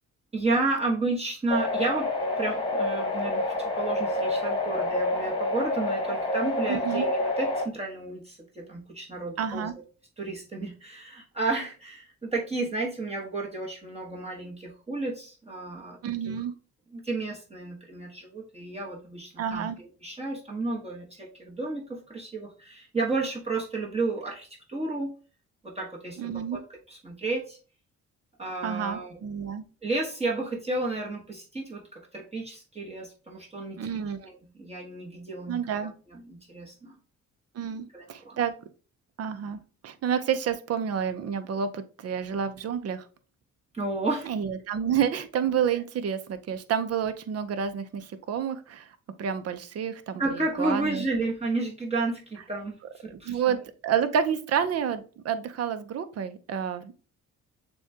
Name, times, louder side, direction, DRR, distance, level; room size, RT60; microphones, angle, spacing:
voice 1, 0.3-2.1 2.4-9.7 10.2-16.0 16.9-25.1 25.6-26.6 26.9-27.6 28.4-29.2 29.8-33.8 34.2-35.6 36.1-37.0 37.9-38.4 43.7-44.3 50.2-53.6, right 2 dB, 20° right, -3 dB, 1.2 m, -32 dB
sound 1, 1.5-7.7, left 2 dB, 15° left, 1.2 m, -28 dB
voice 2, 6.7-7.1 9.4-9.7 16.0-16.5 19.4-19.8 26.2-26.6 28.6-29.6 33.8-34.3 35.5-35.9 37.5-38.5 39.2-43.0 44.2-51.0 53.1-57.0, right 8 dB, 55° right, 10 dB, 0.6 m, -29 dB
6.9 x 2.3 x 2.7 m, 0.36 s
cardioid pair, 90°, 30 cm